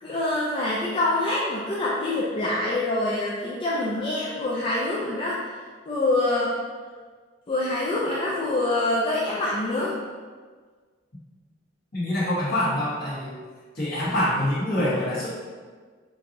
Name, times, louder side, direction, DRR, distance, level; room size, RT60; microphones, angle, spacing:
voice 1, 0.0-5.6 5.9-6.5 7.5-10.0, left 2 dB, 30° left, -6 dB, 0.4 m, -25 dB
voice 2, 11.9-13.4 13.7-15.3, left 1 dB, 50° left, -9 dB, 1.5 m, -25 dB
4.5 x 2.6 x 2.8 m, 1.6 s
head